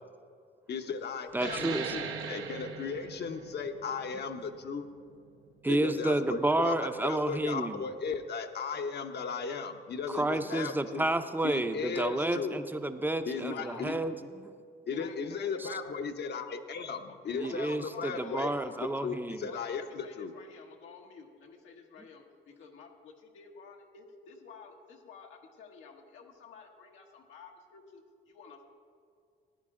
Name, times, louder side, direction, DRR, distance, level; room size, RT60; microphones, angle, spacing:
voice 1, 0.7-2.0 2.3-4.9 5.7-11.1 11.4-12.6 13.2-13.9 14.9-17.0 17.2-18.5 19.0-20.3, left 5 dB, 55° left, 6 dB, 0.8 m, -36 dB
voice 2, 1.3-2.0 5.6-7.9 10.1-14.5 15.6-15.7 17.3-19.5, right 1 dB, 10° right, 9 dB, 0.6 m, -30 dB
sound 1, 1.3-6.5, right 6 dB, 90° right, 1.1 m, -41 dB
voice 3, 13.5-14.0 14.9-16.1 17.1-19.2 19.5-28.6, left 6 dB, 85° left, 1 dB, 1.2 m, -51 dB
14.5 x 9.9 x 3.7 m, 2.3 s
cardioid pair, 90°, 20 cm